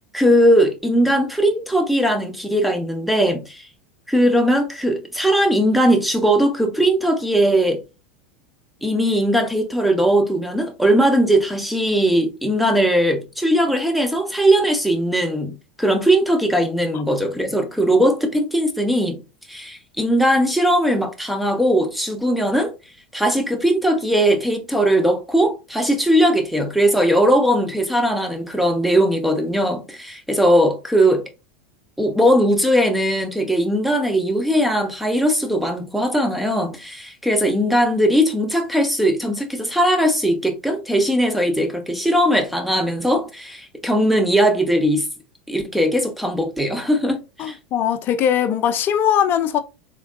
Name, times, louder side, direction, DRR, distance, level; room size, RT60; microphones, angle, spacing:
voice 1, 0.1-3.7 4.1-7.8 8.8-19.2 19.5-22.7 23.1-31.2 32.0-45.1 45.5-47.6, equal, ahead, 0.9 m, -19 dB
voice 2, 47.4-49.6, left 9 dB, 40° left, 0.6 m, -20 dB
3.7 x 3.3 x 2.3 m
hypercardioid pair, 90°, 5 cm